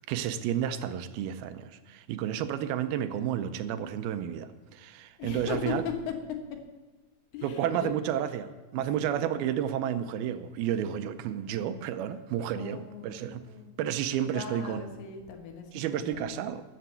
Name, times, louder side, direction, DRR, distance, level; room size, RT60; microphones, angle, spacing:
voice 1, 0.1-5.8 7.4-13.5 13.8-14.8 15.7-16.6, right 10 dB, 85° right, 10 dB, 2.5 m, -31 dB
voice 2, 5.2-5.7 6.1-6.2 7.3-7.9 8.9-9.1 12.5-13.8 14.3-16.3, left 7 dB, 90° left, 3 dB, 3.5 m, -39 dB
13.5 x 6.9 x 8.0 m, 1.3 s
omnidirectional pair, 4.5 m